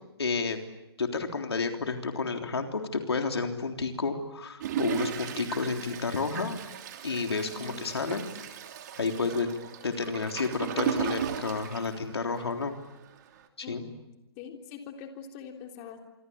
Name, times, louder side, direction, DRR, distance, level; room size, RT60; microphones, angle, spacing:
voice 1, 0.2-0.6 1.0-6.6 7.0-8.2 9.0-9.5 9.8-12.7 13.6-13.9, left 4 dB, 75° left, 5 dB, 3.5 m, -30 dB
Toilet flush, 4.6-12.7 13.1-13.2 13.4-13.5, right 10 dB, 45° right, 3.0 m, -36 dB
voice 2, 7.5-7.8 13.6-14.0 14.4-16.0, left 7 dB, 30° left, 3 dB, 3.6 m, -43 dB
27.0 x 24.5 x 8.7 m, 0.96 s
figure-of-eight pair, 135°, 14 cm